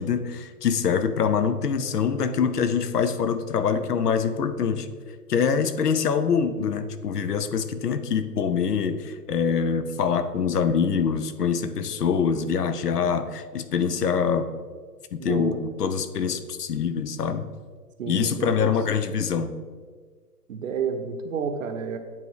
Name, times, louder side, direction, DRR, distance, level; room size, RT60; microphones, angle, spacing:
voice 1, 0.0-4.9 5.3-14.5 15.1-17.5 18.1-19.6, left 6 dB, 75° left, 11 dB, 0.7 m, -24 dB
voice 2, 15.2-15.6 18.0-18.8 20.5-22.0, right 6 dB, 55° right, 7 dB, 0.8 m, -30 dB
8.8 x 3.6 x 4.7 m, 1.5 s
hypercardioid pair, 135°, 48 cm